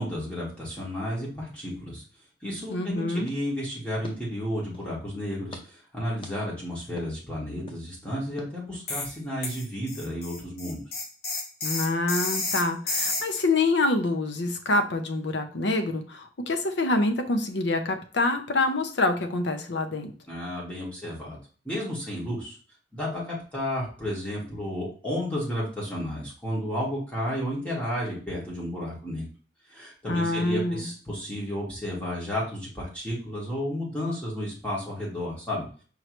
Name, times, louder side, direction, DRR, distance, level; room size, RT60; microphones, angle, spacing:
voice 1, 0.0-2.0 2.4-10.8 20.3-21.4 21.6-22.5 22.9-29.3 29.7-35.7, equal, 10° left, -6 dB, 1.6 m, -32 dB
voice 2, 2.7-3.3 11.6-20.1 30.1-30.9, left 2 dB, 85° left, 6 dB, 0.8 m, -26 dB
sound 1, 3.2-5.0 5.5-5.6 6.2-6.3 7.0-7.1 7.7-7.8 8.4-8.5, left 1 dB, 30° left, 0.7 m, -45 dB
sound 2, 8.9-9.1 9.4-13.4, left 2 dB, 55° left, 1.3 m, -30 dB
5.4 x 3.2 x 3.1 m, 0.40 s
head